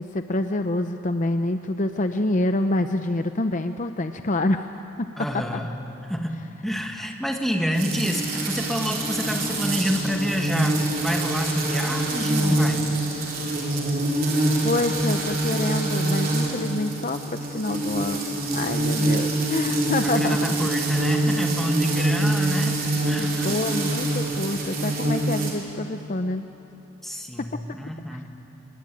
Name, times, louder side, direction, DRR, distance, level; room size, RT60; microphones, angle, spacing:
voice 1, 0.0-4.7 5.0-5.5 14.6-20.7 23.4-26.4 27.4-27.6 28.1-28.2, left 2 dB, 35° left, 8 dB, 0.7 m, -27 dB
voice 2, 5.2-5.7 6.1-12.8 20.0-23.8 27.0-28.4, equal, ahead, 2 dB, 1.8 m, -28 dB
sound 1, 7.7-25.5, right 2 dB, 45° right, 4.3 m, -25 dB
27.0 x 21.5 x 9.1 m, 2.9 s
head